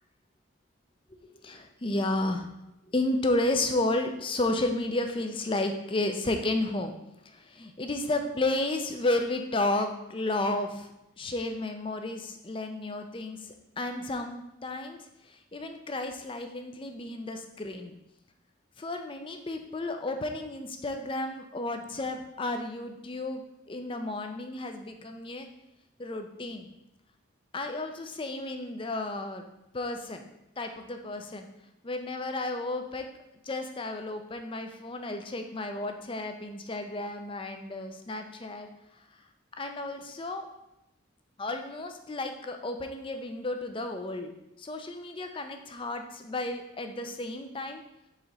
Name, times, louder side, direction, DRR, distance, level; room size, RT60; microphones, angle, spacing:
voice 1, 1.4-2.5 2.9-6.9 7.3-10.9 11.2-15.0 15.5-17.9 18.8-23.4 23.7-25.5 26.0-26.7 27.5-29.4 29.7-30.2 30.6-31.5 31.8-33.1 33.5-38.7 39.6-40.5 41.4-44.3 44.6-47.8, left 2 dB, 25° left, 6 dB, 0.5 m, -32 dB
4.9 x 3.8 x 5.4 m, 0.89 s
head